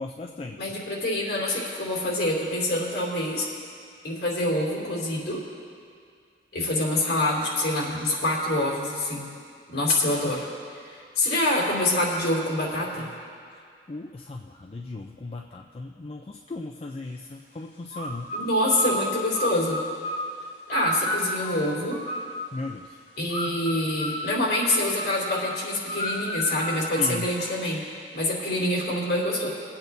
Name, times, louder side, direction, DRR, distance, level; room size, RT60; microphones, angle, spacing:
voice 1, 0.0-0.8 13.5-18.3 22.5-23.0 27.0-27.3, left 2 dB, 35° left, 2 dB, 0.4 m, -37 dB
voice 2, 0.6-3.5 4.0-5.4 6.5-9.3 9.7-10.5 10.8-13.1 18.3-19.8 20.7-22.0 23.2-27.8 28.1-29.5, left 1 dB, 60° left, -3 dB, 2.7 m, -26 dB
sound 1, 17.9-22.6 23.3-27.8, equal, 75° left, 2.1 m, -33 dB
23.0 x 8.6 x 2.7 m, 2.2 s
head